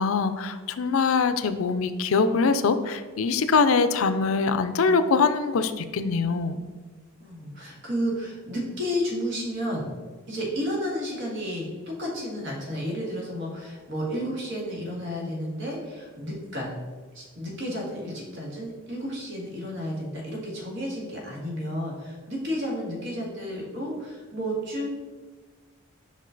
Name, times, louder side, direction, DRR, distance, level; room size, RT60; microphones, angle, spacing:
voice 1, 0.0-6.6, left 4 dB, 75° left, 11 dB, 0.4 m, -23 dB
voice 2, 7.2-9.9 10.3-16.7 17.1-24.9, equal, 60° right, -2 dB, 1.9 m, -32 dB
5.4 x 5.3 x 3.9 m, 1.4 s
head